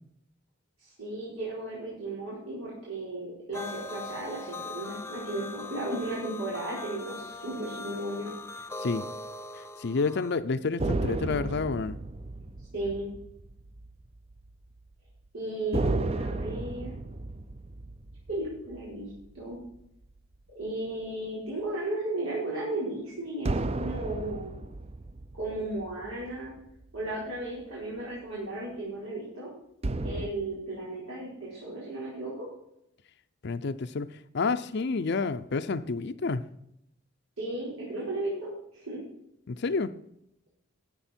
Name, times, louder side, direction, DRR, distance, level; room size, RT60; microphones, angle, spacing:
voice 1, 0.8-8.3 12.7-13.1 15.3-17.0 18.3-19.1 19.3-19.6 20.5-24.6 25.3-26.5 26.9-29.5 30.0-32.3 37.4-39.0, right 1 dB, 90° right, -7 dB, 4.6 m, -35 dB
sound 1, 3.5-10.4, left 2 dB, 15° left, 0.6 m, -41 dB
voice 2, 9.6-12.0 33.4-36.4 39.5-39.9, left 4 dB, 55° left, 11 dB, 0.5 m, -29 dB
sound 2, 10.8-14.5 14.8-14.9 15.7-20.4 23.5-27.1 29.8-30.3, right 2 dB, 30° right, 0.5 m, -34 dB
12.5 x 8.1 x 4.4 m, 0.79 s
head